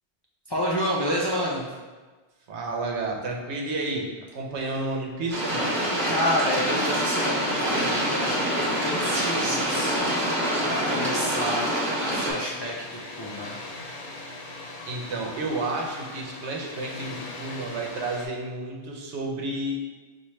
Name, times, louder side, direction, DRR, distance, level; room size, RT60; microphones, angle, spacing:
voice 1, 0.5-1.7 6.1-10.2 10.6-11.7 12.0-13.5 14.0-14.2, equal, 40° left, -5 dB, 0.4 m, -29 dB
voice 2, 2.5-5.7 14.9-19.9, right 2 dB, 85° right, 0 dB, 1.0 m, -31 dB
sound 1, 5.3-12.3, equal, 40° right, 1.1 m, -26 dB
Water, 7.3-18.3, left 2 dB, 75° left, 1.0 m, -40 dB
5.6 x 2.6 x 3.1 m, 1.3 s
omnidirectional pair, 1.1 m